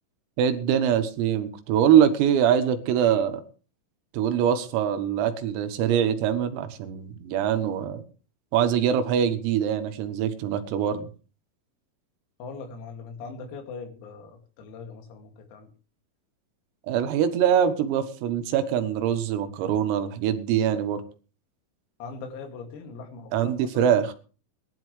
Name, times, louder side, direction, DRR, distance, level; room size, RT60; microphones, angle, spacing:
voice 1, 0.4-3.4 4.1-8.0 8.5-11.1 16.9-21.0 23.3-24.1, right 9 dB, 90° right, 8 dB, 4.1 m, -23 dB
voice 2, 12.4-15.7 22.0-23.9, left 4 dB, 85° left, 5 dB, 5.0 m, -41 dB
20.5 x 11.5 x 3.2 m, 0.37 s
omnidirectional pair, 5.9 m